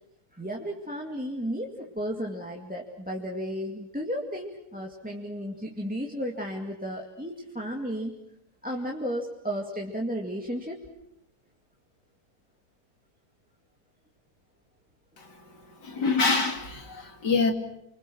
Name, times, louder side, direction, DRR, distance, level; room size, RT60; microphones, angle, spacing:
voice 1, 0.4-8.2 8.6-10.8, equal, 5° right, 0 dB, 2.2 m, -33 dB
voice 2, 15.2-17.5, left 4 dB, 75° left, 5 dB, 3.3 m, -27 dB
30.0 x 24.5 x 6.3 m, 0.82 s
omnidirectional pair, 1.8 m